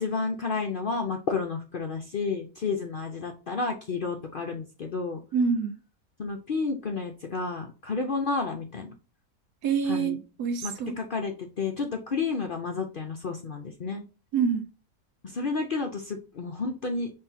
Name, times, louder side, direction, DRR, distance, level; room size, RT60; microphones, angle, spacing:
voice 1, 0.0-5.2 6.2-8.9 9.9-10.2 10.6-14.0 15.2-17.1, left 4 dB, 55° left, 0.5 m, -31 dB
voice 2, 5.3-5.8 9.6-10.9 14.3-14.6, right 6 dB, 85° right, 1.4 m, -26 dB
5.7 x 3.2 x 2.8 m
omnidirectional pair, 1.6 m